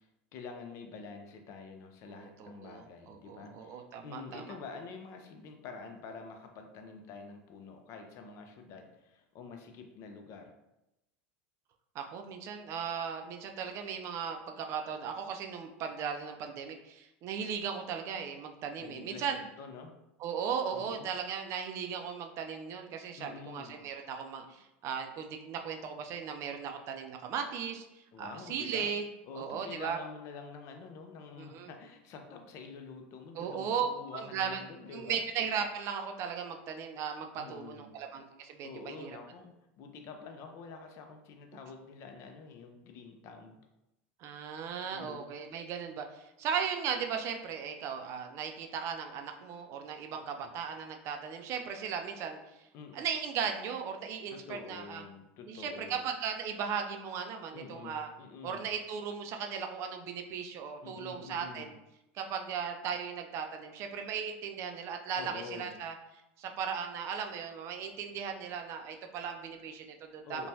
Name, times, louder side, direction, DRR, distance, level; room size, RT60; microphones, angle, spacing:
voice 1, 0.0-10.5 18.8-19.9 20.7-21.1 23.2-23.8 28.1-28.9 29.3-35.3 37.4-37.9 38.6-43.6 44.9-45.3 50.4-50.5 52.7-53.0 54.3-56.0 57.5-58.6 60.8-61.7 65.2-65.7 70.2-70.5, left 4 dB, 50° left, 5 dB, 0.5 m, -47 dB
voice 2, 2.1-4.5 12.0-19.4 20.2-27.8 28.2-29.0 29.3-30.0 31.4-31.7 33.4-33.9 34.1-34.6 34.9-39.1 44.2-52.4 52.9-55.0 55.5-58.1 58.4-61.8 62.1-65.9 66.4-70.5, right 7 dB, 50° right, 5 dB, 0.4 m, -37 dB
3.0 x 2.2 x 2.7 m, 0.91 s
supercardioid pair, 115°, 6 cm